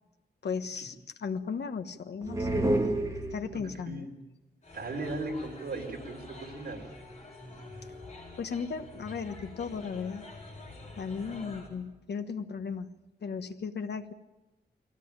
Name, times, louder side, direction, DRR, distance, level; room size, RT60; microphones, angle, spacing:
voice 1, 0.4-2.7 3.3-4.1 8.4-10.2 10.9-12.9 13.2-14.1, left 5 dB, 80° left, 8 dB, 1.4 m, -36 dB
sound 1, 2.2-3.8, right 1 dB, 20° right, 2.8 m, -29 dB
voice 2, 3.5-4.1 4.7-6.9, right 2 dB, 70° right, 1 dB, 4.3 m, -37 dB
sound 2, 4.6-11.7, left 2 dB, 40° left, 7.0 m, -47 dB
23.5 x 17.0 x 9.0 m, 1.1 s
wide cardioid pair, 170°, 17 cm